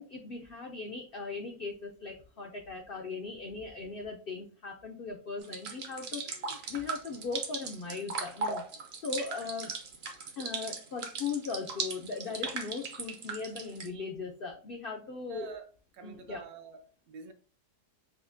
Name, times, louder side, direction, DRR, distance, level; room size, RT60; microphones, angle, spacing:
voice 1, 0.0-8.7 9.0-9.7 10.4-15.6 16.0-16.4, left 4 dB, 75° left, 0.5 m, -39 dB
sound 1, 5.4-13.9, right 4 dB, 55° right, 0.7 m, -38 dB
voice 2, 15.3-17.3, right 5 dB, 75° right, 1.1 m, -48 dB
5.4 x 2.1 x 2.6 m
omnidirectional pair, 1.7 m